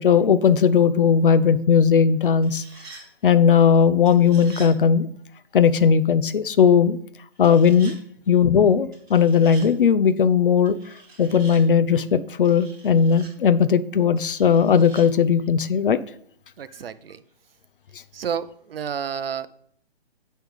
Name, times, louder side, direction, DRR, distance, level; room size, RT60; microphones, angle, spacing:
voice 1, 0.0-2.6 3.2-5.1 5.5-7.0 7.4-7.9 8.3-10.8 11.2-16.0, left 7 dB, 60° left, 14 dB, 0.6 m, -17 dB
sound 1, 2.2-3.0 4.0-4.7 7.3-8.0 8.9-9.7 10.6-11.6 12.4-13.3 14.2-15.0, right 3 dB, 10° right, 2.7 m, -45 dB
voice 2, 16.6-17.2 18.1-19.5, right 7 dB, 65° right, 14 dB, 0.6 m, -30 dB
9.2 x 3.4 x 5.0 m, 0.64 s
hypercardioid pair, 170°, 31 cm